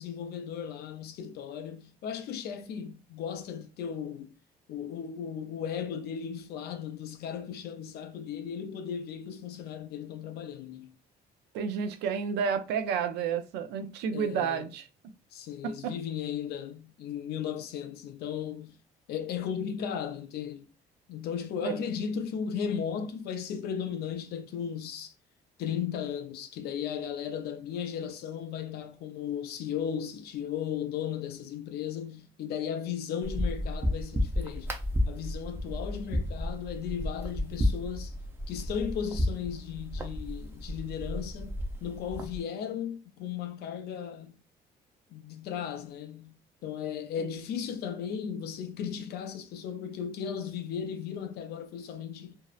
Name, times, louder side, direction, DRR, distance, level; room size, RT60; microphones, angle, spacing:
voice 1, 0.0-4.3 4.7-10.9 14.1-14.7 15.3-18.8 19.1-20.7 21.1-25.1 25.6-34.7 35.1-38.2 38.5-44.4 45.1-52.4, left 8 dB, 70° left, 0.5 m, -36 dB
voice 2, 11.5-14.9 15.6-15.9 21.6-21.8 47.2-47.3, right 7 dB, 80° right, 0.4 m, -31 dB
sound 1, 33.2-42.4, left 1 dB, 15° right, 0.5 m, -32 dB
2.6 x 2.0 x 2.3 m
cardioid pair, 110°, 17 cm